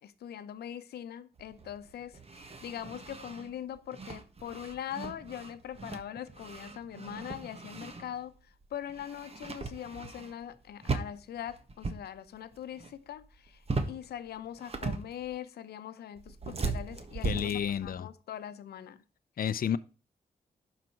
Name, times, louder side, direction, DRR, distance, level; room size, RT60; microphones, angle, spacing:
voice 1, 0.0-19.0, left 10 dB, 90° left, 0.9 m, -42 dB
sound 1, 1.4-8.4 8.6-10.6 10.8-12.1 12.3-12.9 13.2-14.1 14.5-15.4 16.2-17.9, right 3 dB, 40° right, 1.5 m, -38 dB
voice 2, 17.2-18.1 19.4-19.8, left 8 dB, 65° left, 0.6 m, -30 dB
11.5 x 5.1 x 4.6 m
cardioid pair, 60°, 16 cm